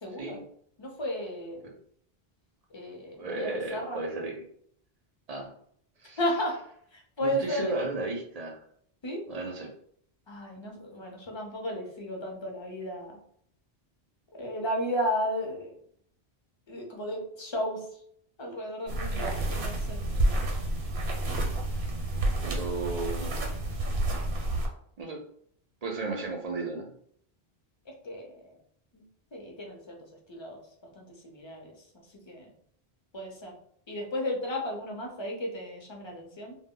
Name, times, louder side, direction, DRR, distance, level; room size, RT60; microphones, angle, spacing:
voice 1, 0.0-0.4 0.8-1.7 2.7-4.0 6.2-6.6 6.9-7.8 9.0-9.3 10.3-13.2 14.3-15.8 16.7-18.0 18.4-20.0 27.9-28.6 28.9-29.0 29.3-30.0 30.3-30.6 30.9-31.9 32.3-32.5 33.1-33.5 33.9-36.6, equal, 35° left, 0 dB, 0.5 m, -34 dB
voice 2, 3.2-4.4 5.3-5.5 6.0-6.2 7.2-8.6 9.3-9.7 21.8-21.9 22.4-23.4 25.0-25.2 25.8-27.0, right 3 dB, 50° right, 1 dB, 0.5 m, -34 dB
sound 1, 18.9-24.7, right 1 dB, 80° right, 0.9 m, -29 dB
2.1 x 2.0 x 3.6 m, 0.65 s
omnidirectional pair, 1.1 m